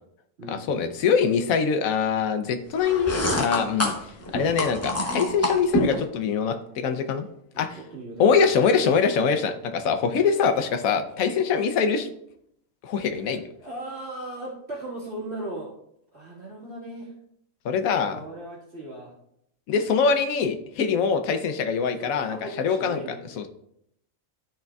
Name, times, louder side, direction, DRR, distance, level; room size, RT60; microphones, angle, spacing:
voice 1, 0.5-3.9 4.3-7.3 7.6-7.8 8.2-12.1 12.8-13.4 17.6-18.2 19.7-23.0 23.4-23.5, left 6 dB, 85° left, 8 dB, 1.1 m, -23 dB
sound 1, 2.8-6.0, equal, 15° left, 0.6 m, -27 dB
voice 2, 7.5-8.5 8.8-9.0 9.4-9.6 13.1-15.7 16.1-17.1 18.1-19.1 22.0-23.4, right 1 dB, 50° right, -5 dB, 2.0 m, -38 dB
12.0 x 4.4 x 2.3 m, 0.75 s
omnidirectional pair, 1.4 m